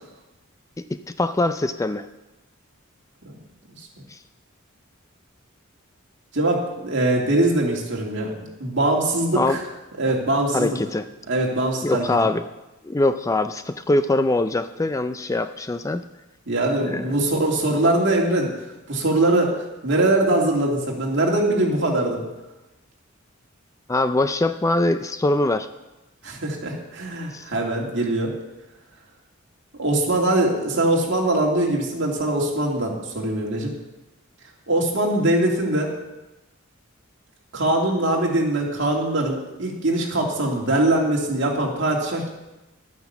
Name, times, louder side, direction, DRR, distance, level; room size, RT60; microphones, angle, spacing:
voice 1, 1.2-2.1 4.1-4.2 9.3-9.6 10.5-11.1 11.8-12.4 12.8-16.0 16.8-17.2 23.9-25.7 27.3-27.4, left 2 dB, 15° left, 10 dB, 0.4 m, -22 dB
voice 2, 6.3-8.3 8.6-9.6 10.0-10.8 11.3-12.1 16.5-18.5 18.9-19.6 19.8-22.2 26.2-28.3 29.8-33.7 34.7-35.9 37.5-42.3, right 1 dB, 60° right, -1 dB, 2.7 m, -22 dB
11.5 x 9.5 x 7.2 m, 1.0 s
head